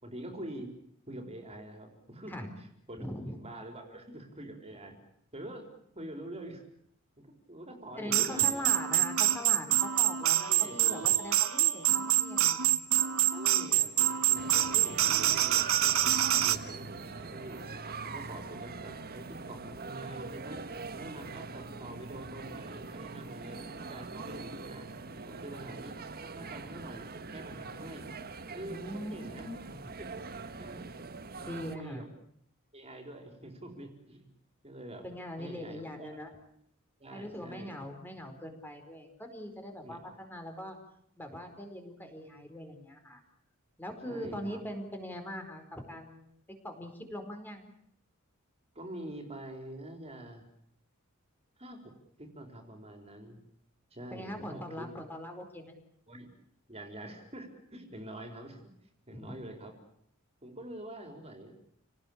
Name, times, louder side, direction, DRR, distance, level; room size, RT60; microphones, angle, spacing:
voice 1, 0.0-0.7 1.1-4.9 5.3-5.7 5.9-6.6 7.2-8.7 10.3-10.8 13.3-17.6 18.0-20.7 21.0-24.9 25.3-28.1 28.5-29.5 30.0-30.1 30.6-30.9 31.3-31.5 31.7-32.0 32.7-34.3 34.6-35.0 35.4-36.2 37.0-37.9 39.8-40.1 44.0-44.6 48.7-50.4 51.6-53.4 53.9-54.9 56.1-56.3 56.7-58.7 59.1-59.8 60.4-61.5, right 1 dB, 30° right, 4 dB, 4.5 m, -45 dB
voice 2, 3.0-3.4 8.0-12.7 28.7-29.8 31.4-32.1 35.0-36.3 37.1-40.8 41.2-43.2 43.8-46.2 46.6-47.7 54.1-55.7 59.1-59.4, equal, 10° left, 5 dB, 4.7 m, -41 dB
sound 1, 8.1-16.6, right 13 dB, 70° right, 1.3 m, -26 dB
sound 2, 14.3-31.8, right 4 dB, 45° right, 1.6 m, -42 dB
29.5 x 19.0 x 8.8 m, 0.72 s
head